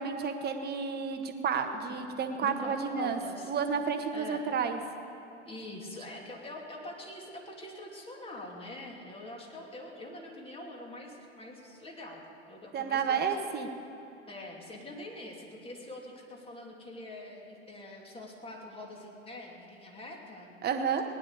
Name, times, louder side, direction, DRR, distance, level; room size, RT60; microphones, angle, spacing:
voice 1, 0.0-3.2 3.5-4.8 12.7-13.7 20.6-21.0, right 6 dB, 30° right, 6 dB, 1.4 m, -31 dB
voice 2, 2.4-3.5 4.1-4.5 5.5-13.3 14.3-20.5, left 1 dB, 15° left, -1 dB, 2.9 m, -44 dB
19.0 x 10.5 x 6.7 m, 2.8 s
figure-of-eight pair, 85°, 35 cm